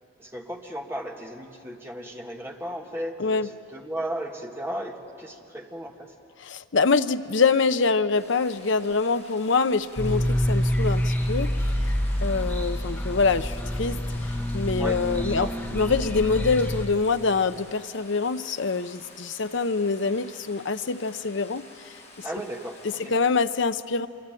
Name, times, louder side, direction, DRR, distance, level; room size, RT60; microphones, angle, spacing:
voice 1, 0.2-6.1 14.8-15.6 22.2-23.1, right 1 dB, 10° right, 1 dB, 1.6 m, -35 dB
voice 2, 6.4-11.5 12.2-14.0 14.5-21.7 23.1-24.1, left 4 dB, 55° left, 11 dB, 0.7 m, -25 dB
Stream, 8.1-23.1, left 2 dB, 30° left, 7.4 m, -49 dB
sound 1, 10.0-16.9, equal, 5° left, 2.0 m, -27 dB
26.5 x 23.0 x 9.1 m, 2.7 s
head